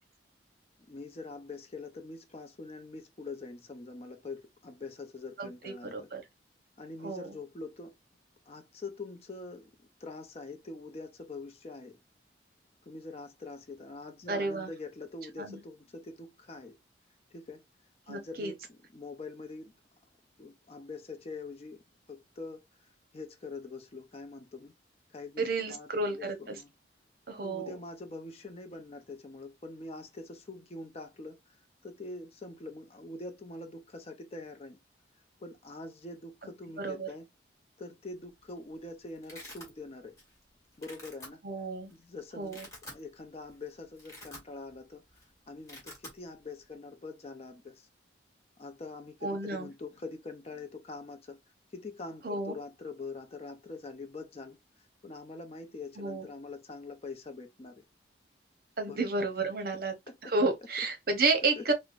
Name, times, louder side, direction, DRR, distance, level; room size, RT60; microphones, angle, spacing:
voice 1, 0.9-6.1 6.8-7.9 8.5-9.7 10.0-12.0 12.9-16.8 17.3-17.6 18.1-18.6 18.9-19.7 20.4-21.8 22.1-22.6 23.1-24.7 25.1-26.7 27.4-31.6 31.8-34.8 35.4-37.2 37.8-40.2 40.8-41.4 41.9-45.0 45.5-47.9 48.6-51.4 51.7-54.6 55.0-57.8 58.9-59.5 60.1-60.3 61.6-61.7, left 3 dB, 35° left, 0.5 m, -44 dB
voice 2, 5.4-6.2 7.0-7.3 14.3-14.7 15.4-15.6 18.1-18.5 25.4-26.6 27.3-27.7 36.8-37.1 41.4-41.9 42.4-42.7 49.2-49.7 52.2-52.5 56.0-56.3 58.8-59.9 60.2-61.7, right 3 dB, 50° right, 0.8 m, -31 dB
Domestic sounds home sounds, 38.4-38.6 38.8-39.7 40.2-40.4 40.7-41.3 41.9-42.0 42.4-43.0 43.4-43.6 43.9-44.8 45.1-45.2 45.5-46.2, left 1 dB, 15° left, 1.3 m, -47 dB
4.5 x 2.0 x 2.4 m
head